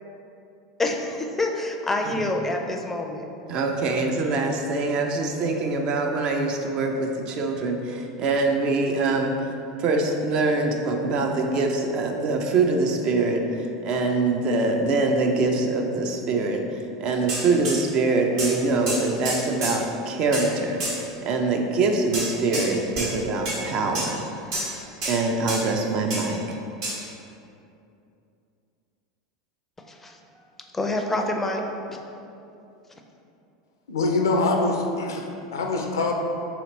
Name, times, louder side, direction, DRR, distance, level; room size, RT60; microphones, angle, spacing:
voice 1, 0.8-3.3 29.8-30.2 30.7-31.6 31.9-32.0, left 2 dB, 15° left, 3 dB, 0.4 m, -27 dB
voice 2, 3.5-9.4 9.8-16.6 17.0-24.2 25.0-26.6, right 3 dB, 45° right, 3 dB, 0.4 m, -24 dB
sound 1, 17.3-17.8 18.4-18.6 18.9-19.8 20.3-20.5 20.8-21.0 22.1-22.7 23.0-23.1 23.5-23.6 23.9-24.2 24.5-24.8 25.0-25.2 25.5-25.7 26.1-26.3 26.8-27.0, right 2 dB, 65° right, 1.3 m, -29 dB
voice 3, 33.9-36.1, left 3 dB, 80° left, 2 dB, 0.4 m, -24 dB
3.1 x 2.9 x 3.9 m, 2.7 s
hypercardioid pair, 85°, 2 cm